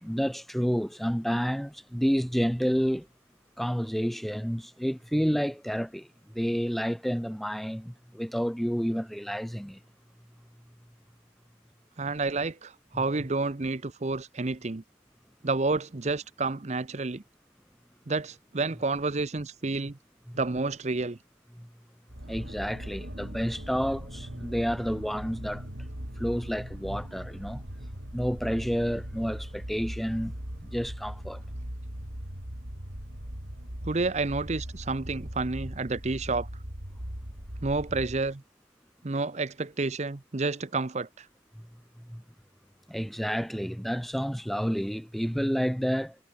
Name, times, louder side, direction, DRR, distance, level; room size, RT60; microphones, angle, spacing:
voice 1, 0.0-3.1 3.6-6.1 6.3-9.8 12.9-13.0 20.3-20.4 21.5-21.7 22.3-25.7 26.2-27.6 28.1-30.3 30.6-31.4 42.0-42.2 42.9-46.2, equal, ahead, 1.6 m, -30 dB
voice 2, 12.0-14.8 15.4-17.2 18.1-20.0 20.3-21.2 33.8-36.5 37.6-38.4 39.0-41.3, right 3 dB, 40° right, 0.8 m, -30 dB
sound 1, 22.1-38.3, equal, 75° right, 5.4 m, -39 dB
head